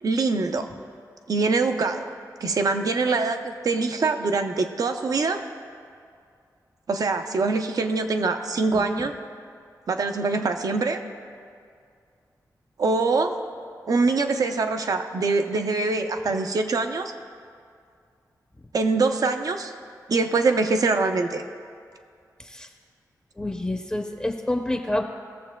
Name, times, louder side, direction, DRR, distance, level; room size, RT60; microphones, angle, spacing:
voice 1, 0.0-0.7 1.3-2.1 2.4-5.4 6.9-9.1 9.9-11.0 12.8-13.4 13.9-17.1 18.7-19.7 20.1-21.4, right 3 dB, 60° right, 6 dB, 0.6 m, -24 dB
voice 2, 8.7-9.1 22.4-22.7 23.4-25.0, left 1 dB, 15° left, 2 dB, 0.6 m, -28 dB
19.5 x 7.1 x 2.2 m, 2.3 s
wide cardioid pair, 110°, 7 cm